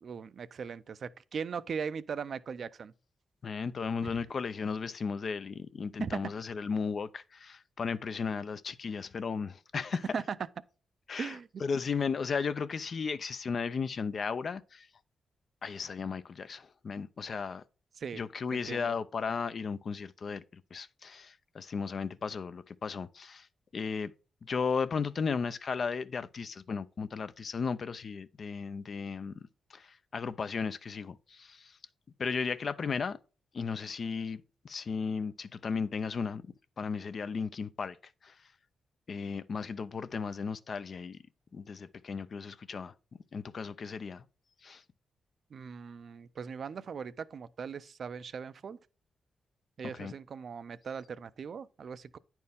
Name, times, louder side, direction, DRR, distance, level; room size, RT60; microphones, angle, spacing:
voice 1, 0.0-2.9 4.0-4.1 6.0-6.2 10.1-10.4 11.2-11.5 18.0-18.2 18.5-19.0 45.5-48.8 49.8-52.2, right 6 dB, 60° right, 0.4 m, -39 dB
voice 2, 3.4-10.0 11.1-14.9 15.6-17.6 18.1-23.5 23.7-24.1 24.4-29.3 29.7-31.8 32.2-33.2 33.5-36.4 36.8-38.0 38.2-38.3 39.1-41.2 41.5-42.9 43.3-44.2 44.6-44.8 49.9-50.1, left 5 dB, 55° left, 0.5 m, -35 dB
9.4 x 4.4 x 3.5 m
cardioid pair, 70°, 0 cm